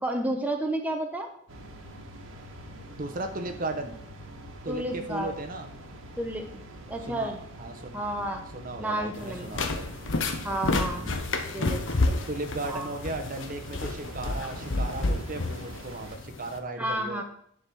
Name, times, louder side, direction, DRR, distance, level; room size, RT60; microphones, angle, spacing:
voice 1, 0.0-1.3 4.7-5.4 6.2-6.6 6.9-7.4 7.9-8.4 8.8-9.5 10.4-11.1 11.5-12.2 12.7-12.9 16.8-17.2, right 1 dB, 10° right, 3 dB, 0.9 m, -31 dB
bed ferry outside, 1.5-16.2, right 1 dB, 85° right, 1.4 m, -45 dB
voice 2, 2.9-4.0 4.6-5.7 7.1-8.0 8.5-9.9 11.0-11.2 12.3-17.2, right 2 dB, 40° right, 5 dB, 0.9 m, -36 dB
sound 1, 9.1-16.6, left 2 dB, 70° left, 1.0 m, -30 dB
10.5 x 4.3 x 6.3 m, 0.65 s
head